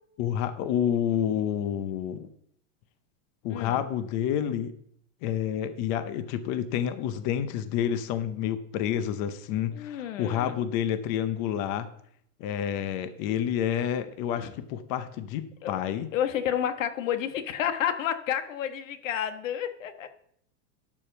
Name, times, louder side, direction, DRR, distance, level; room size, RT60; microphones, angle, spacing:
voice 1, 0.2-2.3 3.4-4.7 5.2-11.9 12.4-16.1, left 9 dB, 30° left, 11 dB, 0.6 m, -29 dB
voice 2, 3.5-3.8 9.7-10.6 14.4-14.5 15.6-15.8 16.1-20.1, left 9 dB, 85° left, 9 dB, 1.4 m, -30 dB
12.0 x 5.1 x 6.9 m, 0.68 s
supercardioid pair, 165°, 38 cm